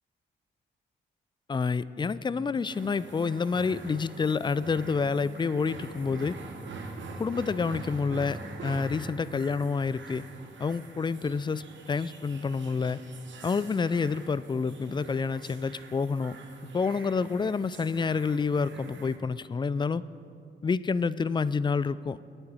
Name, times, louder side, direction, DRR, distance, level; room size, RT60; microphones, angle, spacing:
voice 1, 1.5-6.4 7.2-10.2 10.6-13.0 13.4-16.4 16.7-20.0 20.6-22.2, left 5 dB, 25° left, 18 dB, 0.3 m, -28 dB
sound 1, 2.7-19.2, right 3 dB, 70° right, 1.1 m, -44 dB
9.4 x 8.9 x 6.2 m, 2.3 s
supercardioid pair, 50°, 20 cm